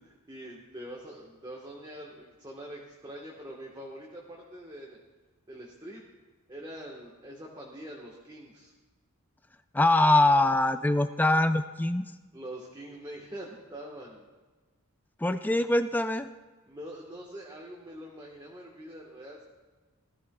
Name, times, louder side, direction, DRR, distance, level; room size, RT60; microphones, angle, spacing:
voice 1, 0.0-5.0 5.5-6.1 6.5-8.7 12.3-14.2 16.7-19.4, right 1 dB, 20° right, -2 dB, 1.2 m, -44 dB
voice 2, 9.7-12.1 15.2-16.3, left 2 dB, 10° left, 10 dB, 0.3 m, -23 dB
19.5 x 13.5 x 2.3 m, 1.3 s
head